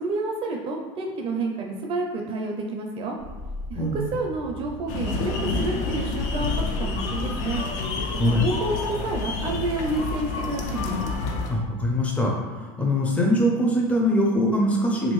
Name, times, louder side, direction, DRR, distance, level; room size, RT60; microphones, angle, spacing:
voice 1, 0.0-3.1 3.7-7.6 8.2-11.0, right 2 dB, 40° right, 1 dB, 0.4 m, -29 dB
sound 1, 3.2-8.7, equal, 85° left, 0.9 m, -37 dB
sound 2, 4.9-11.5, left 3 dB, 60° left, 0.5 m, -29 dB
voice 2, 11.5-15.1, left 1 dB, 10° left, -2 dB, 0.5 m, -22 dB
3.0 x 2.6 x 3.0 m, 1.4 s
supercardioid pair, 110°, 14 cm